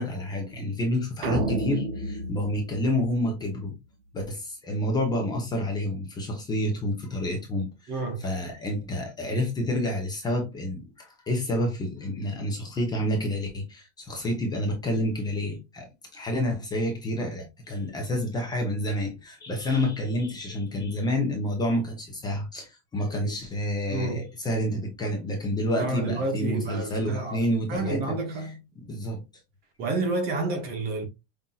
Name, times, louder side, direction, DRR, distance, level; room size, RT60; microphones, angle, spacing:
voice 1, 0.0-3.7 4.1-15.9 16.1-28.5 28.8-29.2, left 1 dB, 10° left, 0.7 m, -29 dB
sound 1, 1.2-3.7, right 3 dB, 85° right, 0.8 m, -31 dB
voice 2, 7.9-8.3 23.2-23.3 23.9-24.3 25.7-27.4 27.7-28.6 29.8-31.1, right 3 dB, 30° right, 0.8 m, -30 dB
5.6 x 2.6 x 2.3 m
supercardioid pair, 165°, 34 cm